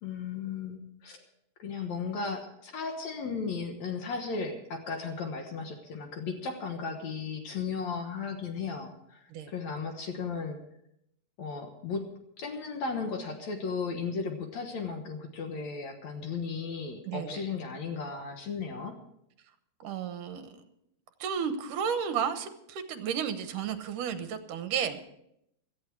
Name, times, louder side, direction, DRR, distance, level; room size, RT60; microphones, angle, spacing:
voice 1, 0.0-1.2 1.6-10.6 11.4-12.1 12.4-19.0, left 5 dB, 60° left, 4 dB, 2.3 m, -35 dB
voice 2, 17.1-17.4 19.8-20.6 21.2-25.0, right 7 dB, 75° right, 9 dB, 2.6 m, -33 dB
17.0 x 13.5 x 4.6 m, 0.76 s
omnidirectional pair, 3.8 m